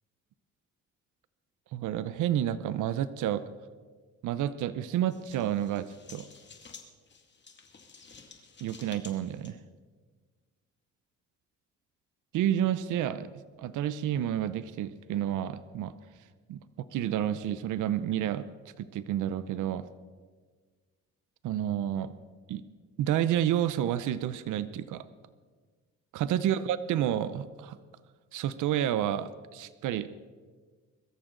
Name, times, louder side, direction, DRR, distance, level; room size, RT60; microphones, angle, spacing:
voice 1, 1.7-3.4 4.2-6.3 8.6-9.6 12.3-13.3 13.6-15.9 16.5-18.5 18.8-19.8 21.4-22.2 22.5-22.6 23.0-25.0 26.1-27.8 28.3-30.1, right 11 dB, 80° right, 14 dB, 0.7 m, -30 dB
sound 1, 5.1-9.5, left 5 dB, 35° left, 2.3 m, -52 dB
22.5 x 13.5 x 3.9 m, 1.5 s
cardioid pair, 90°, 30 cm